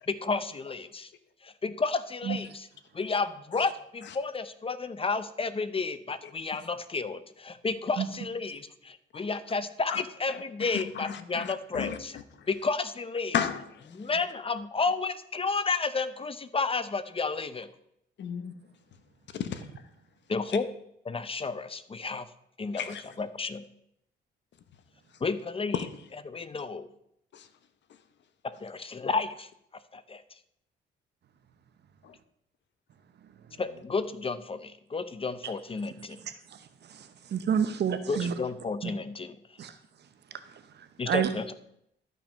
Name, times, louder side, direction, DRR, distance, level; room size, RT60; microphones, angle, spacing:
voice 1, 0.1-1.1 1.4-2.7 2.9-12.1 12.5-13.3 13.9-17.7 20.3-20.7 21.1-22.3 22.6-23.6 25.2-25.8 26.3-26.9 28.4-29.5 29.9-30.2 33.6-36.2 38.1-39.4 41.0-41.5, left 4 dB, 30° left, 0.7 m, -31 dB
voice 2, 10.3-12.5 13.3-14.1 18.2-18.6 19.3-19.7 22.7-23.0 25.7-25.9 27.3-27.5 32.0-32.1, left 8 dB, 65° left, 1.1 m, -34 dB
voice 3, 36.9-38.3 39.6-39.7 41.1-41.3, right 8 dB, 60° right, 0.9 m, -28 dB
12.5 x 5.9 x 5.3 m
cardioid pair, 90°, 20 cm